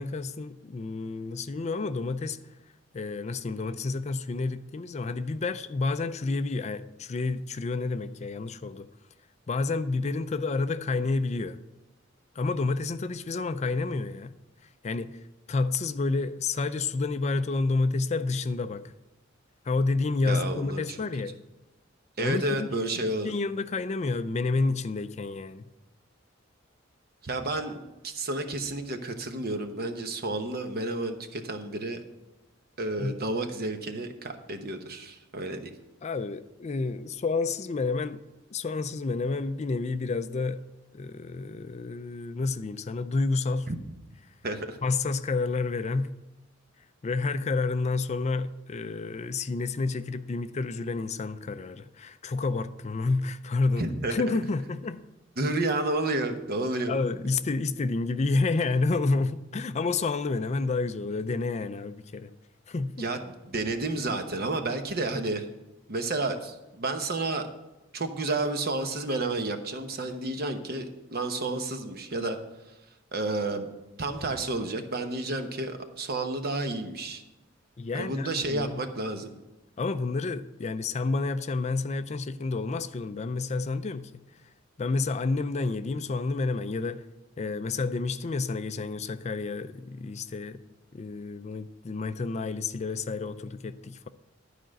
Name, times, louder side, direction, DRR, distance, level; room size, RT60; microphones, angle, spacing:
voice 1, 0.0-2.4 2.9-8.9 9.5-11.6 12.4-14.3 14.8-15.2 15.5-18.9 19.6-21.4 22.2-25.7 33.0-33.2 36.0-38.2 38.5-40.6 40.9-43.7 44.8-46.1 47.0-55.0 56.9-62.3 62.7-63.1 77.8-78.8 79.8-84.2 84.8-87.0 87.4-90.6 90.9-94.1, left 3 dB, 35° left, 0.4 m, -29 dB
voice 2, 20.2-20.8 22.2-23.3 27.2-27.8 28.0-32.0 32.8-35.7 43.7-43.8 44.4-44.8 53.8-54.1 55.4-57.0 63.0-65.5 65.9-67.5 67.9-72.4 73.1-73.7 74.0-77.2 77.9-79.3, right 2 dB, 50° right, 1.0 m, -31 dB
11.5 x 5.0 x 7.5 m
head